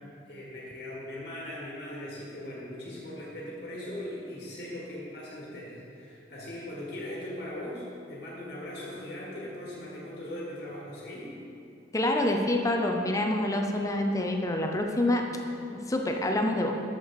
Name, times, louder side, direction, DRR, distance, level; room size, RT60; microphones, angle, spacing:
voice 1, 0.3-11.3, left 1 dB, 50° left, -5 dB, 1.7 m, -39 dB
voice 2, 11.9-15.3 15.7-16.8, left 1 dB, 20° left, 3 dB, 0.5 m, -27 dB
6.7 x 6.2 x 6.3 m, 2.7 s
head